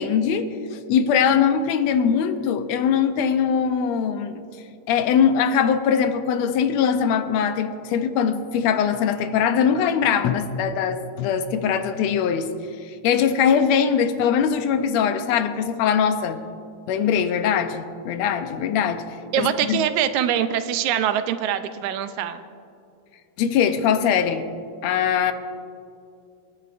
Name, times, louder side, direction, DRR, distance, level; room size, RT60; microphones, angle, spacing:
voice 1, 0.0-4.4 4.9-12.5 13.0-16.4 16.9-19.0 19.4-19.8 23.4-24.5 24.8-25.3, left 7 dB, 75° left, 9 dB, 1.8 m, -21 dB
voice 2, 19.3-22.4, right 9 dB, 80° right, 10 dB, 1.9 m, -23 dB
27.0 x 9.7 x 2.5 m, 2.5 s
omnidirectional pair, 3.4 m